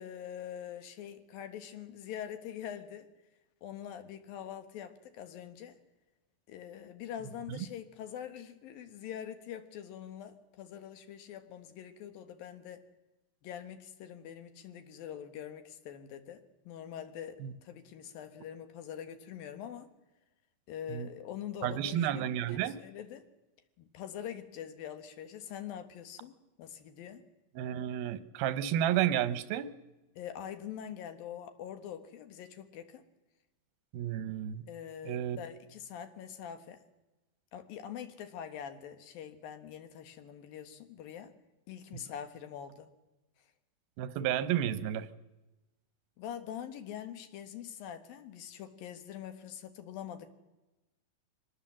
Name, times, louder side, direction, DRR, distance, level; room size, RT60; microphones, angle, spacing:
voice 1, 0.0-3.1 3.6-5.8 6.5-12.8 13.4-19.9 20.7-23.2 23.8-26.3 26.6-27.2 30.2-33.0 34.7-36.8 37.5-41.3 41.7-42.9 46.2-50.3, left 9 dB, 75° left, 9 dB, 3.2 m, -44 dB
voice 2, 21.6-22.8 27.6-29.7 33.9-34.6 35.1-35.4 44.0-45.1, right 11 dB, 90° right, 14 dB, 2.8 m, -31 dB
24.0 x 19.5 x 7.4 m, 1.0 s
omnidirectional pair, 4.2 m